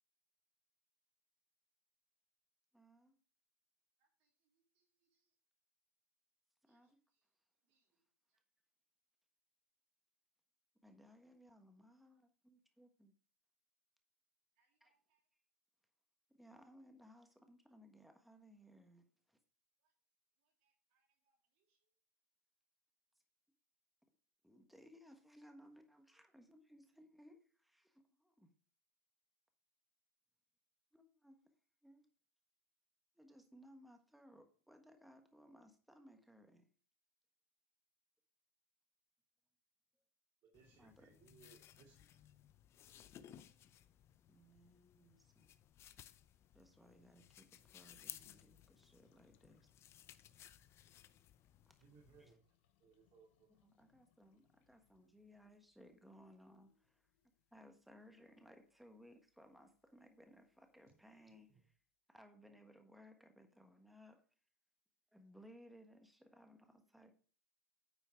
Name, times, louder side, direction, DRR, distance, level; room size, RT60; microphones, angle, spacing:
voice 1, 2.7-3.2 6.6-7.0 10.8-13.1 14.8-14.9 16.4-19.4 24.4-28.5 30.9-31.4 31.8-32.1 33.1-36.7 40.8-41.1 44.3-45.5 46.5-49.7 52.2-52.4 53.6-57.1 57.5-61.8 62.1-64.2 65.1-67.1, equal, ahead, 5 dB, 1.4 m, -63 dB
voice 2, 4.0-5.4 6.6-8.7 14.5-15.3 19.8-19.9 20.4-22.0 40.6-42.3, right 5 dB, 65° right, -1 dB, 3.2 m, -85 dB
voice 3, 40.4-42.1 51.8-52.5 52.8-53.7 61.3-61.6, right 5 dB, 50° right, -4 dB, 2.5 m, -66 dB
sound 1, 40.5-52.3, left 11 dB, 35° left, 0.5 m, -60 dB
sound 2, 47.7-61.9, left 10 dB, 65° left, 0.8 m, -81 dB
9.4 x 4.4 x 4.6 m, 0.42 s
hypercardioid pair, 105°, 7 cm